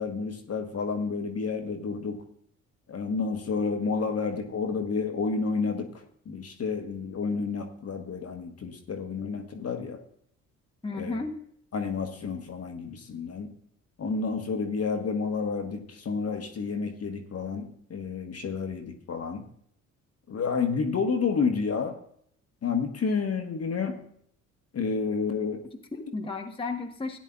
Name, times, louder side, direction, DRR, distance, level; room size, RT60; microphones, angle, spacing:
voice 1, 0.0-2.2 2.9-5.9 6.3-10.0 10.9-11.2 11.7-13.5 14.0-19.4 20.3-22.0 22.6-24.0 24.7-25.6, left 5 dB, 35° left, 5 dB, 1.3 m, -30 dB
voice 2, 10.8-11.4 25.6-27.2, left 3 dB, 15° left, 3 dB, 1.2 m, -34 dB
17.5 x 9.8 x 2.4 m, 0.65 s
figure-of-eight pair, 45°, 41 cm